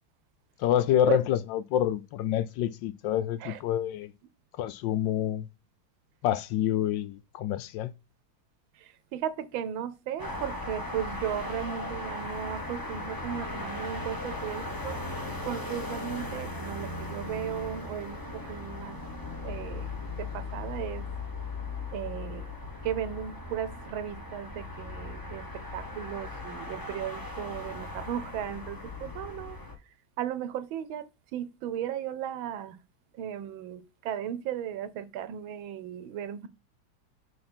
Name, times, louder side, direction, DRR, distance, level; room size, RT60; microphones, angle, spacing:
voice 1, 0.6-4.1 4.6-5.5 6.2-7.9, left 11 dB, 75° left, 1.2 m, -27 dB
voice 2, 8.7-15.0 15.4-19.0 19.4-19.9 20.2-21.1 21.9-22.5 22.8-29.6 30.2-32.8 33.1-36.5, right 10 dB, 85° right, 1.5 m, -36 dB
sound 1, 10.2-29.7, left 2 dB, 15° left, 0.9 m, -38 dB
6.4 x 4.0 x 4.3 m
omnidirectional pair, 2.1 m